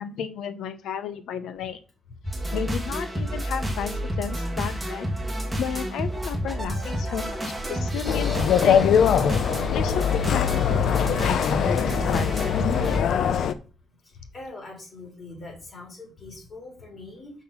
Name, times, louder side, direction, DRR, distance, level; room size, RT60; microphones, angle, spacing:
voice 1, 0.0-1.8 2.5-5.1 5.6-8.4 8.6-9.1 9.7-13.1, left 8 dB, 85° left, 11 dB, 1.1 m, -33 dB
sound 1, 2.2-13.0, equal, 5° right, 2.2 m, -29 dB
sound 2, 8.1-13.5, left 8 dB, 65° left, 0.6 m, -22 dB
voice 2, 14.3-17.3, left 2 dB, 30° left, -2 dB, 4.3 m, -42 dB
6.3 x 5.7 x 5.8 m, 0.36 s
cardioid pair, 160°, 0 cm